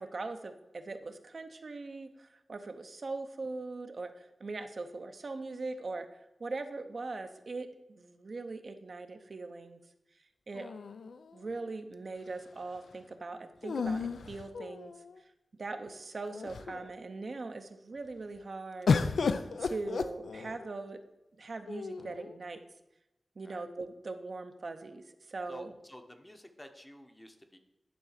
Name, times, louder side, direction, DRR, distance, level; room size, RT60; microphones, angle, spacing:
voice 1, 0.0-6.1 6.4-9.8 10.5-10.7 11.3-14.9 15.6-18.9 19.6-21.0 21.4-22.6 23.4-25.7, right 3 dB, 50° right, 7 dB, 0.6 m, -41 dB
sound 1, 10.5-11.6 13.6-15.2 15.9-16.0 16.3-16.9 18.9-20.7 21.7-22.4, left 5 dB, 90° left, 0.4 m, -33 dB
voice 2, 25.5-27.6, left 1 dB, 15° left, 6 dB, 0.8 m, -51 dB
10.0 x 3.8 x 6.4 m, 0.94 s
wide cardioid pair, 115°, 0 cm